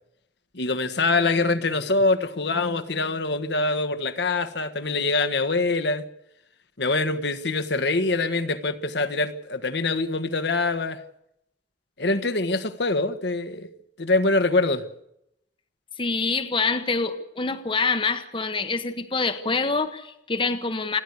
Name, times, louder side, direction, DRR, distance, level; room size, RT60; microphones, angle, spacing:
voice 1, 0.5-6.0 6.8-11.0 12.0-13.7 14.0-14.8, left 3 dB, 60° left, 1.4 m, -24 dB
voice 2, 16.0-21.0, left 4 dB, 25° left, 1.1 m, -26 dB
29.5 x 11.5 x 8.2 m
head